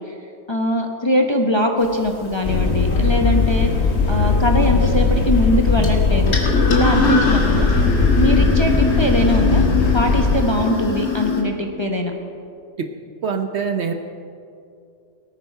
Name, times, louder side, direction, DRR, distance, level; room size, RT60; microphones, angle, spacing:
voice 1, 0.5-3.7 4.1-6.4 6.7-7.7 8.1-9.6 9.9-12.1, left 1 dB, 20° left, 2 dB, 0.9 m, -21 dB
sound 1, 1.8-11.4, left 3 dB, 80° left, 2.3 m, -24 dB
sound 2, 2.4-10.4, left 4 dB, 50° left, 1.5 m, -18 dB
voice 2, 13.2-13.9, right 6 dB, 55° right, 6 dB, 0.9 m, -23 dB
18.5 x 9.2 x 5.6 m, 2.5 s
omnidirectional pair, 1.5 m